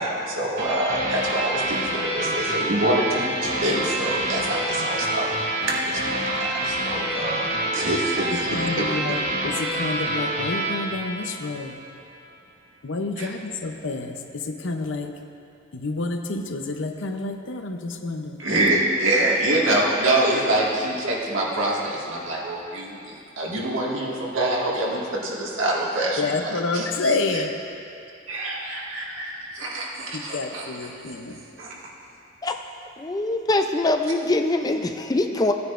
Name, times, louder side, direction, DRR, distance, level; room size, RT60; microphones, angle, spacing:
voice 1, 0.0-9.2 13.2-13.3 18.4-27.4 28.3-31.1 31.6-31.8, right 1 dB, 85° right, -4 dB, 1.9 m, -26 dB
sound 1, 0.6-11.8, right 1 dB, 45° right, 2.4 m, -27 dB
voice 2, 8.3-11.8 12.8-15.1 15.7-18.4 26.2-27.6 30.1-31.3, left 3 dB, 70° left, 5 dB, 0.7 m, -29 dB
voice 3, 33.0-35.5, left 2 dB, 20° left, 5 dB, 0.4 m, -23 dB
16.0 x 9.5 x 2.5 m, 2.6 s
head